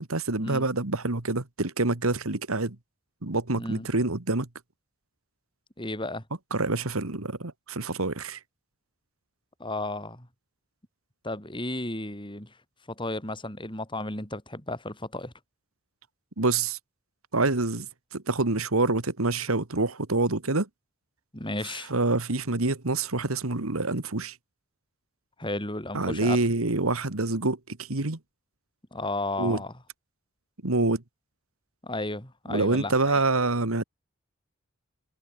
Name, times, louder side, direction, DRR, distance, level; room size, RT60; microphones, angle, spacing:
voice 1, 0.1-2.8 3.2-4.5 6.5-8.4 16.4-16.8 17.3-20.7 21.9-24.4 25.9-28.2 29.4-29.6 30.6-31.0 32.5-33.8, right 3 dB, 80° right, 1.9 m, -26 dB
voice 2, 3.6-3.9 5.8-6.2 9.6-10.3 11.2-12.5 12.9-15.3 21.3-21.9 25.4-26.4 28.9-29.7 31.8-33.2, left 2 dB, 25° left, 7.3 m, -33 dB
head